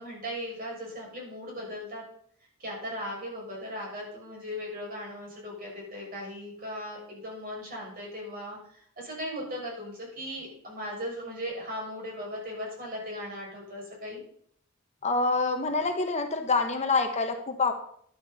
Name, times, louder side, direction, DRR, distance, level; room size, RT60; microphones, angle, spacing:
voice 1, 0.0-2.0 2.6-14.2, equal, 45° right, -2 dB, 6.6 m, -38 dB
voice 2, 15.0-17.7, left 3 dB, 35° left, 6 dB, 1.2 m, -26 dB
12.5 x 11.5 x 4.2 m, 0.62 s
head